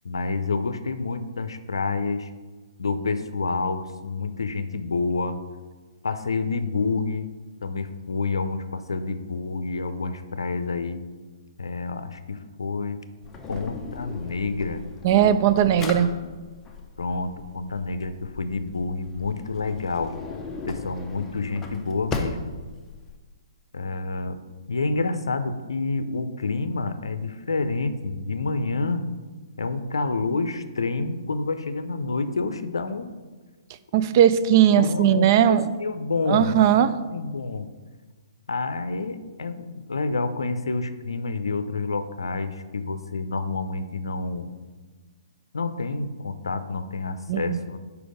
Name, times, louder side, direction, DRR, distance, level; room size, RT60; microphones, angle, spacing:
voice 1, 0.0-2.3 2.8-5.4 6.0-7.3 7.6-11.0 11.6-13.0 13.5-14.8 15.1-15.4 15.7-16.3 17.0-20.1 20.7-22.5 23.7-24.4 24.7-29.1 29.6-33.1 34.8-37.7 38.5-44.5 45.5-47.8, left 3 dB, 80° left, 11 dB, 0.5 m, -28 dB
Drawer open or close, 13.2-23.2, left 3 dB, 15° left, 0.6 m, -37 dB
voice 2, 15.0-16.1 33.9-35.7 36.3-36.9 47.3-47.6, right 10 dB, 45° right, 13 dB, 0.3 m, -18 dB
5.1 x 4.7 x 5.0 m, 1.3 s
hypercardioid pair, 130°, 3 cm